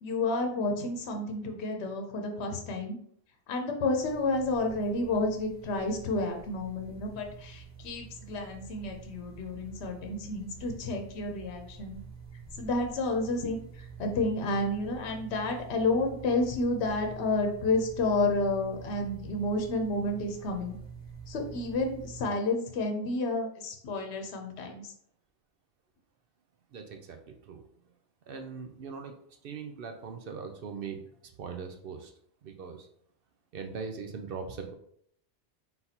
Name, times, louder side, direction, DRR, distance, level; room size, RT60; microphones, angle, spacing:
voice 1, 0.0-3.0 3.5-12.0 12.5-20.8 21.3-24.9, left 2 dB, 75° left, 4 dB, 1.0 m, -30 dB
sound 1, 4.0-22.2, right 6 dB, 85° right, 1.8 m, -47 dB
voice 2, 26.7-27.6 28.3-29.2 29.4-32.1 32.4-32.9 33.5-34.7, right 5 dB, 60° right, 5 dB, 0.7 m, -40 dB
4.1 x 3.9 x 2.8 m, 0.65 s
omnidirectional pair, 1.1 m